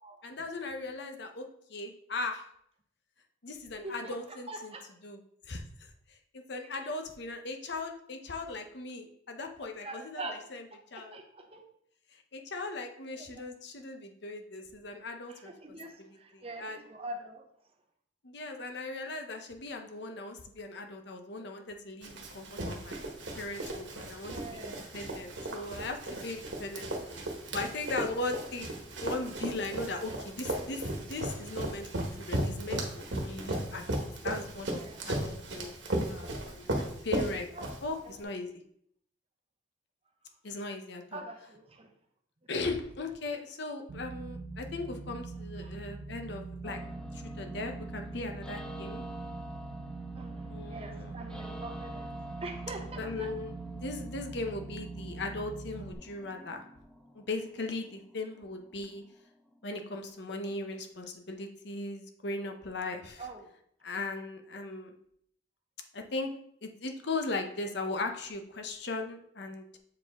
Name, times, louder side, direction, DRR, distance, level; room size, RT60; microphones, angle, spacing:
voice 1, 0.2-2.4 3.4-4.7 5.0-5.2 5.5-5.9 6.5-10.7 10.9-11.2 12.3-16.8 18.2-23.0 23.4-28.7 29.0-31.9 32.2-34.8 35.1-37.5 37.8-38.5 40.4-41.2 42.5-46.8 47.1-49.0 50.5-51.2 52.9-56.6 57.1-59.0 59.6-63.3 63.8-64.9 65.9-66.3 66.6-69.8, left 2 dB, 55° left, 4 dB, 0.8 m, -38 dB
voice 2, 3.8-4.1 4.5-4.8 6.8-6.9 9.6-10.4 11.1-11.6 13.2-13.3 15.3-15.9 16.2-17.4 24.3-24.9 34.7-35.1 37.5-37.7 38.0-38.2 41.1-41.9 45.6-45.7 50.1-52.1 52.4-53.3 63.2-63.5, right 2 dB, 30° right, 3 dB, 0.8 m, -43 dB
Run, 22.0-38.2, right 1 dB, 65° right, 1.3 m, -36 dB
sound 1, 43.9-55.9, right 3 dB, 85° right, 0.7 m, -42 dB
sound 2, 46.6-60.6, equal, 5° left, 0.5 m, -48 dB
7.6 x 4.8 x 3.6 m, 0.68 s
head